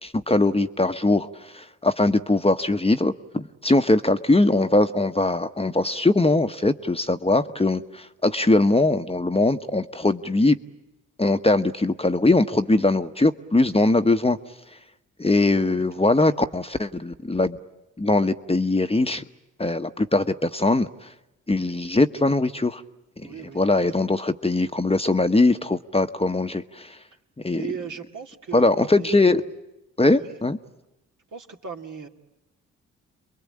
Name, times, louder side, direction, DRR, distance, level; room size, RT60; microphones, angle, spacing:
voice 1, 0.0-10.6 11.2-14.4 15.2-17.6 18.0-19.2 19.6-21.1 21.5-22.8 23.2-27.0 27.4-27.7 28.5-29.4 30.0-30.6, left 2 dB, 15° left, 8 dB, 1.2 m, -21 dB
voice 2, 23.2-23.6 27.5-29.1 30.0-30.4 31.3-32.1, right 6 dB, 60° right, 2 dB, 2.4 m, -37 dB
28.5 x 22.5 x 8.7 m, 0.96 s
hypercardioid pair, 40°, 34 cm